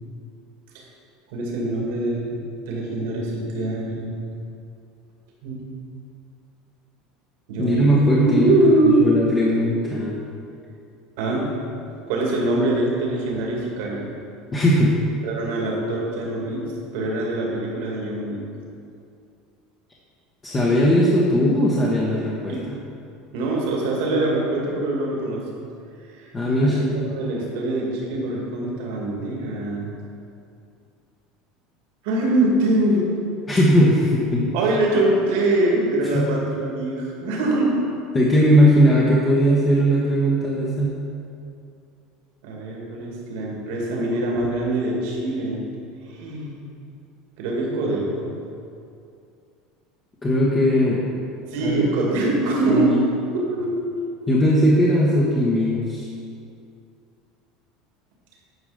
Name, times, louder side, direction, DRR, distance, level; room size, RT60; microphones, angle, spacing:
voice 1, 1.3-2.4 2.7-4.2 5.4-5.6 7.5-7.9 8.2-9.1 11.2-11.5 12.1-14.1 15.2-16.6 16.9-18.4 22.5-22.6 23.3-25.5 26.1-26.3 26.6-29.9 32.0-33.1 34.5-37.9 42.4-45.6 46.1-46.5 47.4-48.3 51.5-52.9 53.4-53.8, right 2 dB, 75° right, -2 dB, 2.1 m, -23 dB
voice 2, 7.6-8.6 8.8-10.2 14.5-15.0 20.4-22.6 26.3-26.8 33.5-34.5 36.1-36.3 38.1-40.9 50.2-51.0 51.6-51.9 52.7-53.0 54.3-56.1, equal, 25° left, -5 dB, 1.2 m, -18 dB
9.6 x 5.1 x 5.0 m, 2.5 s
supercardioid pair, 110°, 0 cm